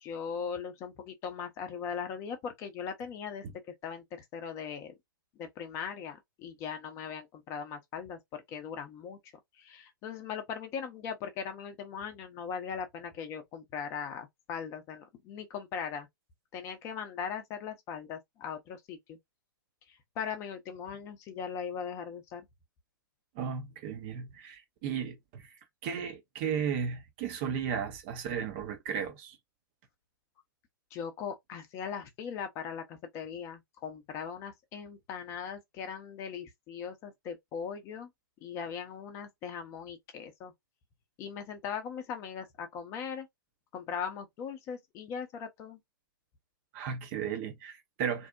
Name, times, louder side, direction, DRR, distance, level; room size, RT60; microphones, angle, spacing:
voice 1, 0.0-3.4 3.8-4.0 4.3-4.9 5.4-9.2 9.6-16.1 16.5-19.2 20.2-22.4 30.9-38.1 38.4-40.5 41.2-43.3 43.7-45.8, left 7 dB, 25° left, 0.6 m, -39 dB
voice 2, 23.4-25.6 25.8-29.4 46.7-48.3, right 7 dB, 35° right, 0.5 m, -35 dB
2.6 x 2.0 x 2.4 m
figure-of-eight pair, 110°, 12 cm